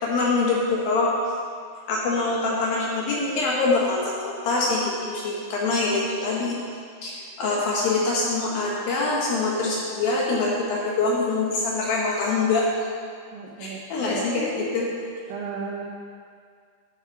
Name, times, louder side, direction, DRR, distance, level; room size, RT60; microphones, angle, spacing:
voice 1, 0.0-1.1 1.9-6.6 7.0-12.7 13.6-14.8, left 3 dB, 70° left, -4 dB, 2.4 m, -24 dB
voice 2, 13.3-14.5 15.3-15.9, right 4 dB, 90° right, -2 dB, 2.0 m, -35 dB
13.5 x 7.5 x 4.1 m, 2.2 s
omnidirectional pair, 5.4 m